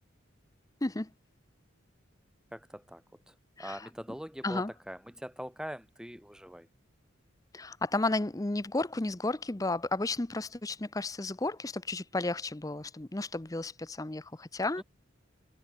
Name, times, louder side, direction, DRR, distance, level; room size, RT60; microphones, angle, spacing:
voice 1, 2.5-3.3 3.6-6.7 14.8-14.9, equal, 5° right, 4.7 m, -43 dB
voice 2, 7.5-14.8, left 2 dB, 15° left, 0.6 m, -33 dB
head